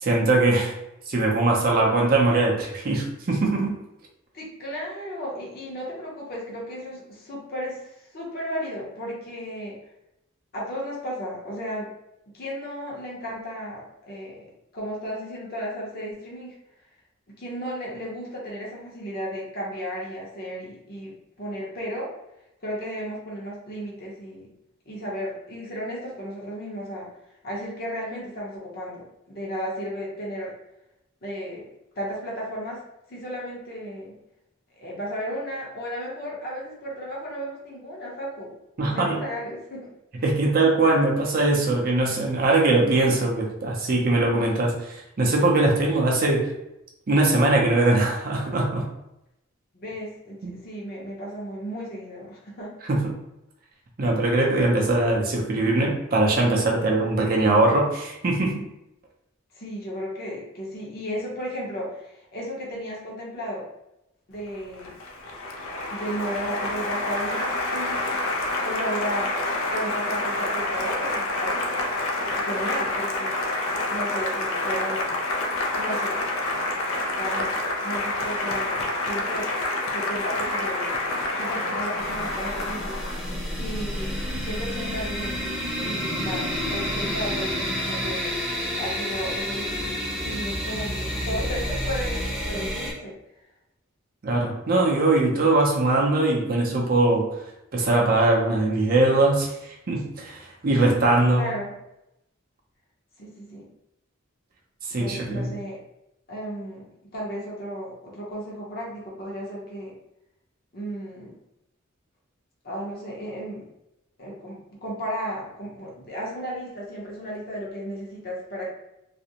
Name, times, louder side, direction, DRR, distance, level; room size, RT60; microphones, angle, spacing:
voice 1, 0.0-0.7 1.1-3.8 38.8-39.2 40.2-46.5 47.1-48.9 50.4-50.6 52.9-53.2 54.0-58.7 94.2-97.3 97.7-101.5 104.9-105.5, right 2 dB, 45° right, -1 dB, 0.5 m, -21 dB
voice 2, 4.3-9.8 10.5-11.9 12.3-14.5 14.7-16.5 17.3-22.1 22.6-24.5 24.9-27.1 27.4-30.5 31.2-31.7 31.9-32.8 33.1-34.2 34.8-38.5 38.9-39.9 49.7-52.7 59.5-63.6 64.3-64.9 65.9-68.1 68.6-69.5 69.7-71.9 72.4-73.4 73.9-75.2 75.7-76.6 77.2-77.6 77.8-79.5 79.9-80.9 81.3-83.0 83.6-89.7 90.2-93.1 101.3-101.7 103.2-103.7 104.9-105.8 106.3-109.9 110.7-111.3 112.6-113.7 114.2-118.7, equal, 45° left, -4 dB, 0.8 m, -34 dB
Applause, 64.5-83.4, left 2 dB, 85° left, 0.4 m, -28 dB
sound 1, 82.0-92.9, equal, ahead, 0.7 m, -29 dB
2.4 x 2.0 x 2.7 m, 0.86 s
head